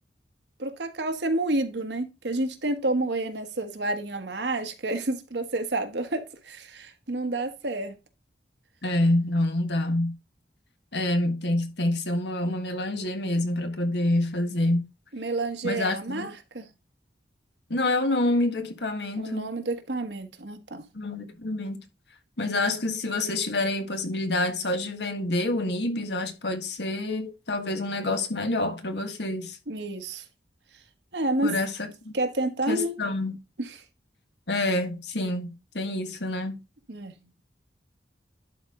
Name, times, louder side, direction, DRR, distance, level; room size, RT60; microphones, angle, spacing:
voice 1, 0.6-8.0 15.1-16.7 19.2-20.9 29.7-30.2 31.1-31.6 32.1-32.9 33.6-33.7 36.9-37.2, right 2 dB, 75° right, 1.3 m, -29 dB
voice 2, 8.8-10.1 10.9-14.8 15.6-16.3 17.7-19.5 20.9-21.8 22.4-29.6 31.4-32.1 32.7-33.4 34.5-36.6, left 2 dB, 70° left, 1.6 m, -27 dB
11.0 x 4.4 x 3.7 m
head